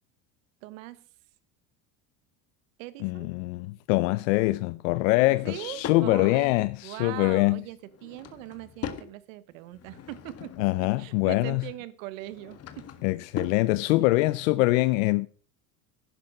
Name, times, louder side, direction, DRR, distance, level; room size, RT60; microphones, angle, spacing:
voice 1, 0.6-1.0 2.8-3.3 5.3-6.6 6.8-12.8, right 16 dB, 90° right, 1.3 m, -41 dB
voice 2, 3.0-7.6 10.6-11.7 13.0-15.3, left 20 dB, 90° left, 0.7 m, -24 dB
Drawer open or close / Wood, 5.1-6.1 7.8-9.1 9.6-10.8 12.1-13.6, left 8 dB, 40° left, 1.7 m, -40 dB
11.5 x 10.5 x 5.4 m
supercardioid pair, 120°, 38 cm